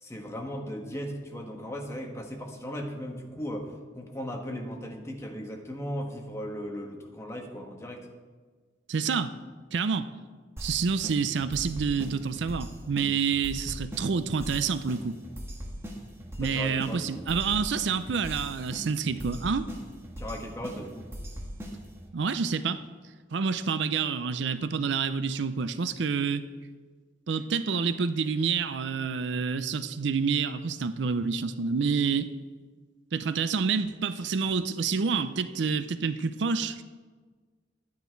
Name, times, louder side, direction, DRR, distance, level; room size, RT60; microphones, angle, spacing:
voice 1, 0.0-3.7 3.9-8.1 16.4-17.3 20.2-21.1, equal, 15° left, 1 dB, 1.2 m, -37 dB
voice 2, 8.9-9.3 9.7-10.1 10.6-15.2 16.4-19.7 22.1-22.8 23.3-26.4 27.3-32.3 33.1-36.8, right 5 dB, 70° right, 12 dB, 0.5 m, -28 dB
sound 1, 10.6-22.1, equal, 15° right, 1.4 m, -40 dB
12.0 x 9.5 x 4.5 m, 1.4 s
head